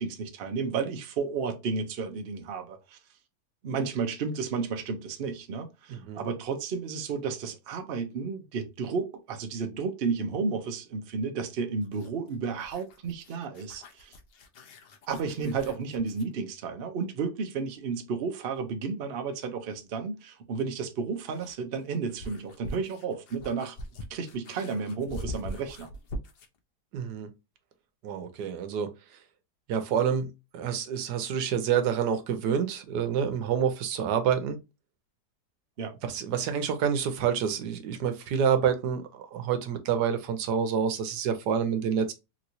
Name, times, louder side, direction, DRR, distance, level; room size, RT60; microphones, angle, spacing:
voice 1, 0.0-3.0 3.6-14.2 15.1-23.8 24.1-25.9 35.8-36.0, right 5 dB, 55° right, 0.7 m, -32 dB
voice 2, 5.9-6.2 26.9-27.3 28.0-28.9 29.7-34.6 36.0-42.1, right 7 dB, 85° right, 1.3 m, -28 dB
sound 1, 11.8-16.3 18.7-18.8 20.8-26.6, equal, 85° left, 0.5 m, -43 dB
3.1 x 3.0 x 2.6 m
omnidirectional pair, 1.7 m